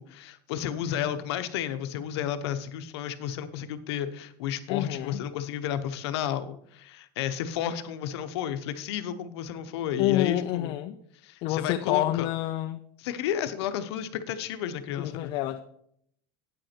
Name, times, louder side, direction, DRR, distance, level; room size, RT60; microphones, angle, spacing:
voice 1, 0.0-10.8 11.2-12.3 13.0-15.3, left 10 dB, 80° left, 11 dB, 0.8 m, -32 dB
voice 2, 4.7-5.2 10.0-11.0 11.4-12.8 15.0-15.6, left 14 dB, 35° left, 7 dB, 0.4 m, -28 dB
8.7 x 7.9 x 4.4 m, 0.70 s
cardioid pair, 170°, 14 cm